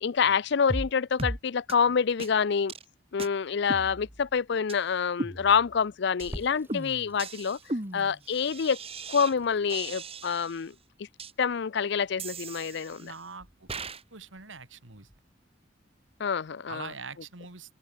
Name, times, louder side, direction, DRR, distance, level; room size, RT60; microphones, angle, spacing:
voice 1, 0.0-2.7 3.1-7.6 7.9-8.8 9.1-10.7 11.4-13.1 16.2-16.9, left 6 dB, 60° left, 0.5 m, -27 dB
sound 1, 0.7-0.9 1.2-1.4 1.7-1.8 2.2-2.3 2.7-2.8 3.2-3.3 3.7-4.3 4.7-4.8 5.2-5.8 6.2-6.3 6.7-9.3 9.7-10.6 11.2-11.3 12.2-13.2 13.7-14.0, right 2 dB, 30° right, 3.6 m, -37 dB
Water tap faucet / Sink (filling or washing), 6.2-15.2, equal, 10° right, 7.8 m, -50 dB
voice 2, 13.0-13.7 14.1-15.1 16.7-17.7, right 4 dB, 80° right, 3.0 m, -43 dB
open air
head